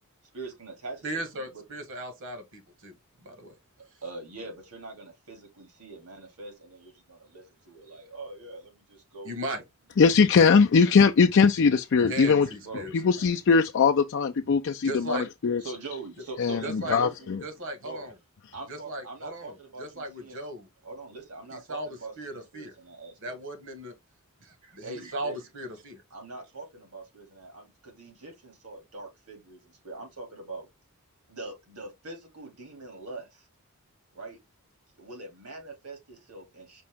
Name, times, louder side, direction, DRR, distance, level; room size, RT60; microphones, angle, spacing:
voice 1, 0.3-1.2 1.5-1.6 4.0-9.4 12.6-13.0 15.6-17.4 17.8-18.1 18.5-20.4 20.8-23.4 24.6-25.4 26.1-30.7 31.3-33.5 34.1-34.4 35.0-36.8, right 2 dB, 80° right, 2.4 m, -43 dB
voice 2, 1.0-3.5 9.2-9.6 11.9-12.9 14.8-15.3 16.6-17.0 17.4-18.1 18.7-20.7 21.5-22.7 23.2-23.9 24.4-26.0, right 1 dB, 60° right, 1.4 m, -37 dB
voice 3, 10.0-12.5 13.0-15.6 16.4-17.4, left 5 dB, 55° left, 0.4 m, -21 dB
5.2 x 2.8 x 3.5 m
head